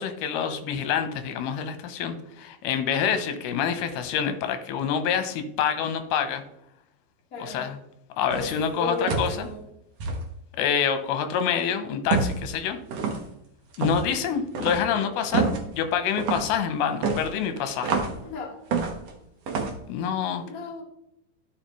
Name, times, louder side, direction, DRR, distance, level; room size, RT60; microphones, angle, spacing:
voice 1, 0.0-6.4 7.4-7.8 8.2-9.5 10.6-12.8 13.8-18.0 19.9-20.4, left 7 dB, 85° left, 8 dB, 2.8 m, -27 dB
voice 2, 7.3-7.6 8.3-9.6 18.2-18.5 20.4-20.8, left 2 dB, 45° left, -1 dB, 1.1 m, -34 dB
sound 1, 8.3-8.6 9.1-9.4 10.0-10.2 12.1-12.4 12.9-13.2 13.7-14.1 14.6-14.8 15.3-15.6 16.2-16.5 17.0-18.2 18.7-19.1 19.5-19.8, right 4 dB, 70° right, 1.5 m, -27 dB
13.0 x 5.2 x 3.0 m, 0.80 s
omnidirectional pair, 4.3 m